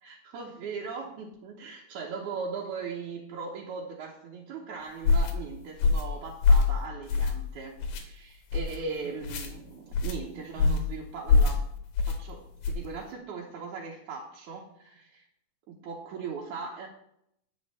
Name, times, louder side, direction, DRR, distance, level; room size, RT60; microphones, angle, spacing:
voice 1, 0.0-11.6 12.1-15.2 15.7-16.9, right 5 dB, 75° right, -2 dB, 2.4 m, -39 dB
sound 1, 5.0-5.3 5.8-6.1 6.4-6.7 7.1-7.5 7.8-8.0 8.5-8.8 9.2-9.5 9.9-10.2 10.6-10.9 11.3-11.6 12.0-12.2 12.6-12.9, left 4 dB, 75° left, 2.5 m, -23 dB
9.4 x 5.4 x 6.6 m, 0.75 s
omnidirectional pair, 3.6 m